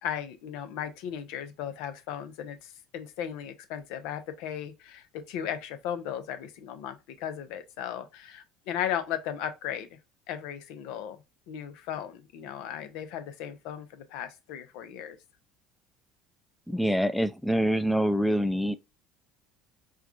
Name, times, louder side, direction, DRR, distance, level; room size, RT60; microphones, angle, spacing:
voice 1, 0.0-9.9 10.3-11.2 11.5-15.2, left 9 dB, 70° left, 0.7 m, -36 dB
voice 2, 16.7-18.8, equal, 5° left, 0.4 m, -25 dB
4.6 x 2.3 x 2.4 m
hypercardioid pair, 75°, 0 cm